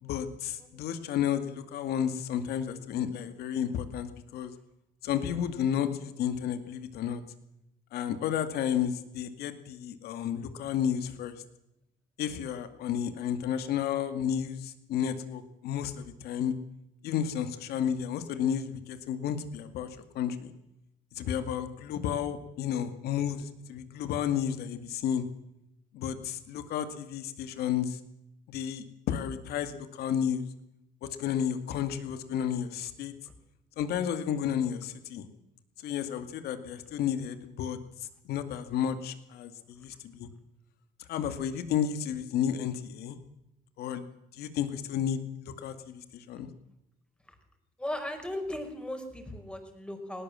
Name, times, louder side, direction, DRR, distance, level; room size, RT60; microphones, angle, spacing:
voice 1, 0.0-4.5 5.0-7.2 7.9-11.4 12.2-16.5 17.0-20.5 21.2-25.2 25.9-28.0 28.5-30.4 31.0-33.1 33.8-35.3 35.8-40.3 41.0-43.2 43.8-44.0 44.3-46.5, left 9 dB, 85° left, 9 dB, 2.3 m, -32 dB
voice 2, 47.8-50.2, left 1 dB, 5° left, 5 dB, 4.9 m, -37 dB
19.5 x 18.5 x 7.5 m, 0.85 s
cardioid pair, 110°, 16 cm